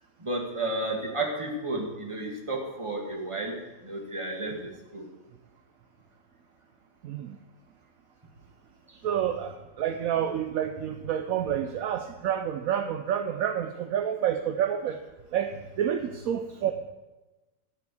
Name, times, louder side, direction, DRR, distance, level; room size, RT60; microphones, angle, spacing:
voice 1, 0.2-5.1, right 2 dB, 20° right, 0 dB, 2.0 m, -32 dB
voice 2, 7.0-7.4 9.0-15.0 15.3-15.5 15.8-16.7, right 9 dB, 70° right, 6 dB, 1.0 m, -29 dB
14.0 x 5.1 x 8.2 m, 1.1 s
omnidirectional pair, 1.7 m